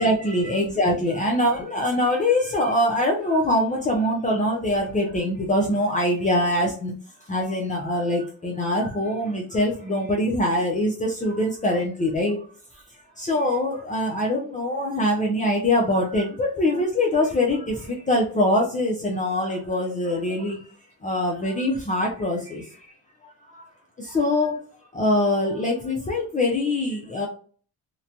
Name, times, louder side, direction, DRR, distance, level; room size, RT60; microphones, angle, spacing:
voice 1, 0.0-6.9 7.3-12.4 13.2-20.7 21.0-22.8 23.5-23.6 24.0-24.6 24.9-27.3, left 1 dB, 20° left, -2 dB, 0.6 m, -23 dB
2.9 x 2.2 x 2.5 m, 0.43 s
cardioid pair, 105°, 35 cm